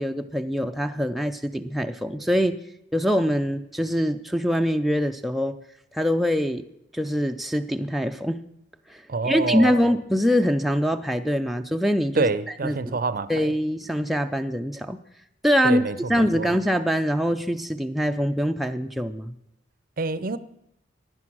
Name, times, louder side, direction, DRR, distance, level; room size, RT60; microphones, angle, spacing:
voice 1, 0.0-2.6 2.9-5.6 5.9-6.6 6.9-8.4 8.9-12.3 12.6-13.0 13.3-15.0 15.4-15.8 16.1-19.3, equal, ahead, 0.4 m, -24 dB
voice 2, 9.1-9.7 12.2-13.5 15.6-16.5 20.0-20.4, right 3 dB, 45° right, 0.6 m, -26 dB
15.5 x 11.0 x 6.2 m
head